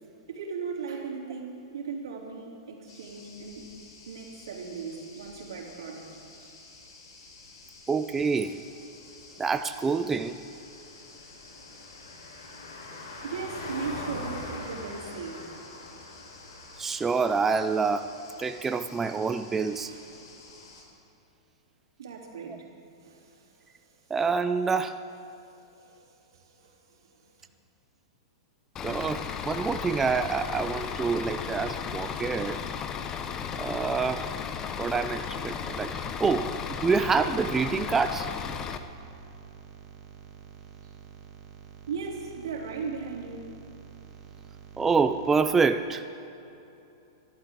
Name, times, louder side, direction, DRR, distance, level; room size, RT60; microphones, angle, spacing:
voice 1, 0.3-3.7 4.1-6.1 6.4-6.5 13.2-15.4 19.9-20.3 22.0-22.6 23.0-23.3 25.8-26.0 26.3-26.8 41.9-43.5, right 5 dB, 80° right, 0 dB, 3.0 m, -37 dB
sound 1, 2.9-20.8, left 2 dB, 80° left, 4.4 m, -45 dB
voice 2, 7.9-8.6 9.4-10.4 16.8-18.1 18.4-19.9 22.5-22.6 24.1-25.0 28.8-32.6 33.6-34.3 34.8-38.3 44.8-46.0, right 5 dB, 10° right, 9 dB, 0.4 m, -27 dB
Bus / Idling, 28.8-38.8, left 7 dB, 25° left, 0.8 m, -35 dB
sound 2, 35.2-45.4, right 7 dB, 35° right, 1.5 m, -49 dB
26.5 x 12.0 x 3.8 m, 2.8 s
hypercardioid pair, 140°, 2 cm